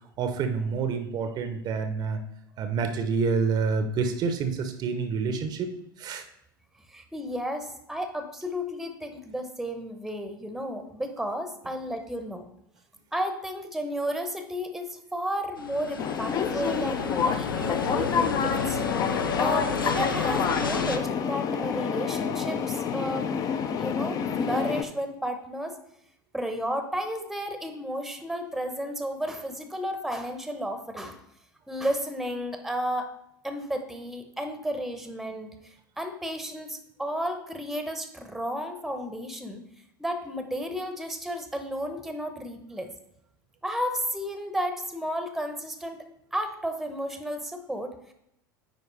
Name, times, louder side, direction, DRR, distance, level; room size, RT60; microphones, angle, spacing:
voice 1, 0.2-2.2 2.6-6.2, right 5 dB, 40° right, 8 dB, 0.8 m, -28 dB
voice 2, 6.9-12.4 13.1-18.8 19.4-23.3 23.8-25.8 26.3-31.2 31.7-33.1 33.4-39.6 40.0-42.9 43.6-46.0 46.3-48.1, equal, ahead, 7 dB, 0.9 m, -33 dB
sound 1, 15.6-21.0, left 4 dB, 80° left, 0.7 m, -32 dB
sound 2, 16.0-24.8, left 7 dB, 35° left, 0.6 m, -28 dB
9.4 x 4.7 x 3.3 m, 0.78 s
figure-of-eight pair, 80°, 11 cm